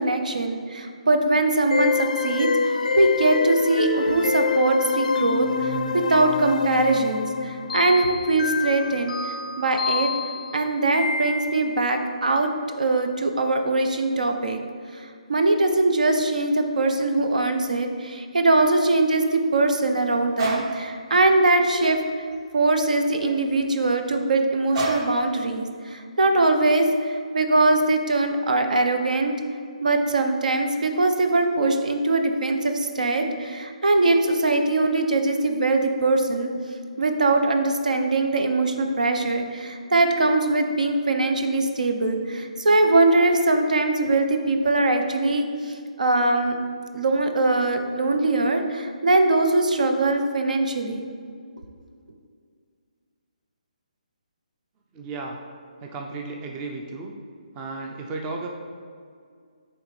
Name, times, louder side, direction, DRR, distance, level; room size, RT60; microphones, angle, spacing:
voice 1, 0.0-10.1 10.5-12.5 12.8-14.6 14.9-15.0 15.3-22.0 22.5-29.3 29.8-36.5 37.0-46.6 46.9-51.0, right 2 dB, 75° right, 5 dB, 0.7 m, -22 dB
sound 1, 1.7-11.9, left 4 dB, 75° left, 0.4 m, -26 dB
sound 2, 20.4-20.7 21.2-21.4 21.8-22.8 23.2-23.6 24.7-25.2, right 3 dB, 40° right, 0.9 m, -29 dB
voice 2, 54.9-55.4 55.8-57.1 57.5-58.5, right 3 dB, 20° right, 1 dB, 0.4 m, -34 dB
8.9 x 3.3 x 3.2 m, 2.1 s
hypercardioid pair, 155°, 4 cm